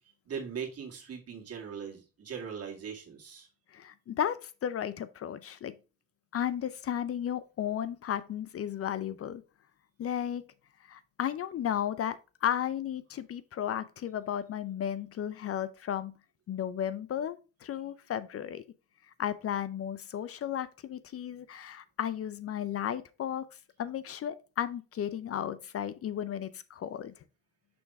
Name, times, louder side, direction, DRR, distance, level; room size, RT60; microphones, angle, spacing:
voice 1, 0.3-3.5, right 6 dB, 55° right, 2.2 m, -40 dB
voice 2, 3.7-5.7 6.3-9.4 10.0-10.4 10.8-16.1 16.5-18.6 19.2-23.4 23.8-27.1, left 10 dB, 50° left, 0.5 m, -34 dB
6.2 x 3.5 x 4.5 m
cardioid pair, 90°, 30 cm